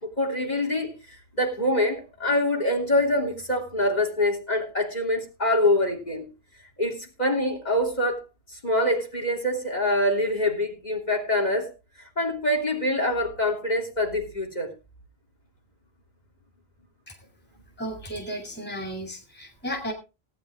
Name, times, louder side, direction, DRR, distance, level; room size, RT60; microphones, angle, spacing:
voice 1, 0.0-6.3 6.8-8.2 8.5-11.7 12.0-14.7, left 1 dB, 40° left, 4 dB, 3.4 m, -25 dB
voice 2, 17.8-19.9, equal, 10° left, 2 dB, 2.7 m, -34 dB
17.5 x 9.4 x 3.6 m, 0.30 s
omnidirectional pair, 1.0 m